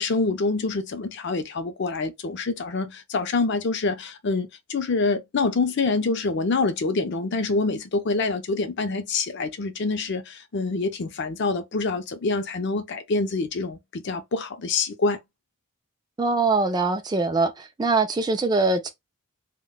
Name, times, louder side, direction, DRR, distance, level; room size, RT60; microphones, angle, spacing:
voice 1, 0.0-15.2, left 3 dB, 50° left, 0.5 m, -26 dB
voice 2, 16.2-18.9, right 3 dB, 20° right, 0.3 m, -23 dB
2.2 x 2.1 x 3.8 m
head